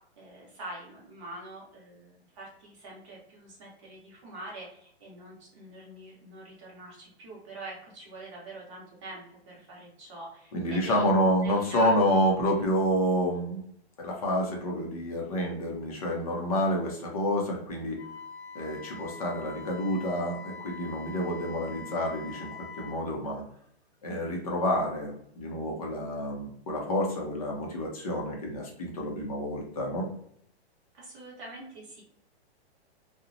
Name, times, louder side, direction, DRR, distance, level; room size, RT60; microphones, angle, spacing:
voice 1, 0.2-11.9 30.9-32.0, right 1 dB, 30° right, -4 dB, 0.8 m, -44 dB
voice 2, 10.5-13.6 14.0-18.0 18.5-23.4 24.0-30.1, equal, 35° left, 0 dB, 0.5 m, -28 dB
Wind instrument woodwind instrument, 18.0-23.0, left 6 dB, 80° left, 0.7 m, -44 dB
2.7 x 2.1 x 2.5 m, 0.69 s
hypercardioid pair, 170°, 33 cm